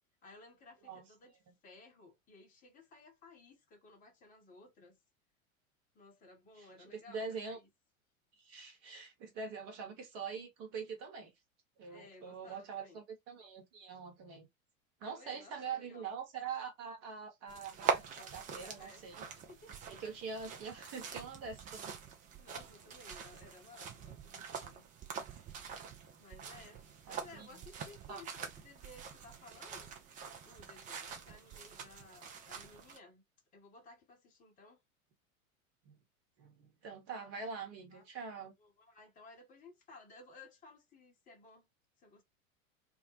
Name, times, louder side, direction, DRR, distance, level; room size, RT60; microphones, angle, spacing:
voice 1, 0.2-1.4 1.6-5.0 5.9-7.7 11.9-13.0 15.1-16.1 18.0-18.3 18.6-19.1 19.5-20.2 22.4-24.9 26.2-29.9 30.4-33.2 33.5-34.8 37.9-38.0 38.6-41.7 42.0-42.2, left 3 dB, 20° left, 0.9 m, -57 dB
voice 2, 6.6-7.6 8.4-11.3 11.8-14.5 15.0-19.3 19.9-22.0 27.1-27.6 28.1-28.2 35.8-36.0 36.4-38.5, right 5 dB, 40° right, 1.1 m, -44 dB
sound 1, 17.5-33.0, right 6 dB, 20° right, 0.5 m, -44 dB
2.4 x 2.0 x 2.7 m
figure-of-eight pair, 85°, 42 cm